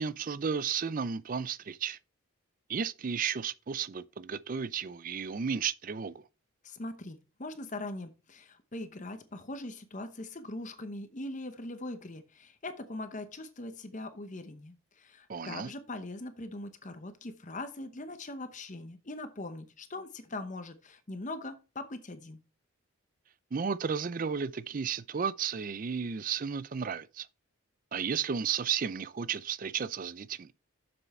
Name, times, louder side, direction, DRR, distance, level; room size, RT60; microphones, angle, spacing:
voice 1, 0.0-2.0 2.7-6.2 15.3-15.7 23.5-27.3 27.9-30.5, right 6 dB, 40° right, 0.4 m, -33 dB
voice 2, 6.6-22.4, left 2 dB, 35° left, 0.8 m, -41 dB
7.0 x 6.6 x 4.2 m
head